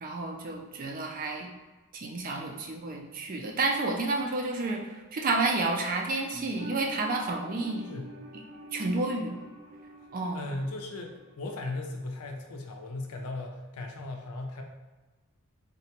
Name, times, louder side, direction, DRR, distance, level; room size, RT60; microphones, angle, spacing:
voice 1, 0.0-1.5 1.9-7.8 8.7-9.4 10.1-10.5, right 3 dB, 40° right, 1 dB, 0.4 m, -30 dB
sound 1, 6.3-11.8 12.1-12.2, equal, 85° right, 0.7 m, -46 dB
voice 2, 7.8-8.2 10.3-14.6, left 2 dB, 85° left, 3 dB, 0.5 m, -37 dB
3.8 x 2.2 x 2.8 m, 1.2 s
head